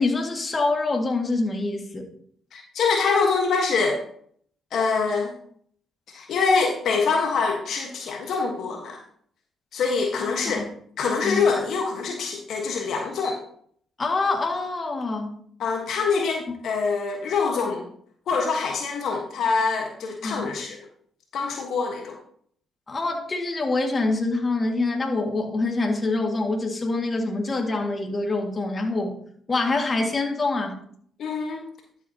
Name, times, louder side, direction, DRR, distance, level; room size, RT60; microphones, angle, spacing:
voice 1, 0.0-2.1 10.6-10.7 11.2-11.4 14.0-15.4 20.2-20.5 22.9-29.2 29.5-30.8, left 3 dB, 35° left, 2 dB, 2.0 m, -25 dB
voice 2, 2.5-4.0 4.7-5.3 6.1-9.0 9.7-10.7 11.0-13.4 15.6-17.8 18.3-20.9 21.3-22.2 31.2-31.6, left 4 dB, 70° left, 1 dB, 1.4 m, -25 dB
12.0 x 7.7 x 2.9 m, 0.62 s
supercardioid pair, 60°, 0 cm